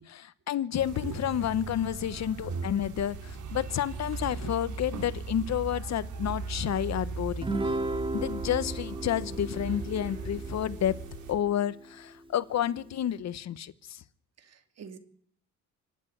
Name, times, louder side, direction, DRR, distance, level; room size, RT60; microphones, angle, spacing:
voice 1, 0.0-7.5 8.1-11.0 11.3-14.0, left 10 dB, 60° left, 16 dB, 1.1 m, -30 dB
sound 1, 0.7-11.3, right 4 dB, 80° right, 4.7 m, -38 dB
Guitar, 7.4-12.0, right 2 dB, 15° right, 2.4 m, -35 dB
voice 2, 14.4-15.0, right 4 dB, 55° right, 8 dB, 2.8 m, -39 dB
25.5 x 11.5 x 9.4 m, 0.66 s
cardioid pair, 90°, 30 cm